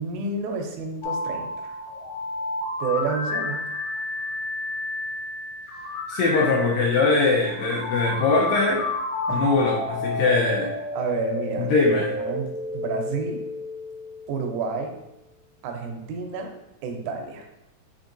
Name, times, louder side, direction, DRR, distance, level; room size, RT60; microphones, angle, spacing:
voice 1, 0.0-1.7 2.8-3.6 9.3-9.5 10.6-11.7 12.2-13.4 14.3-14.9 15.6-16.5 16.8-17.5, right 4 dB, 80° right, 3 dB, 2.2 m, -30 dB
sound 1, 1.0-14.9, left 2 dB, 60° left, 2.1 m, -31 dB
voice 2, 6.1-8.8 9.3-10.7 11.6-12.1, left 3 dB, 80° left, -2 dB, 2.1 m, -21 dB
5.2 x 4.1 x 2.5 m, 0.92 s
omnidirectional pair, 4.4 m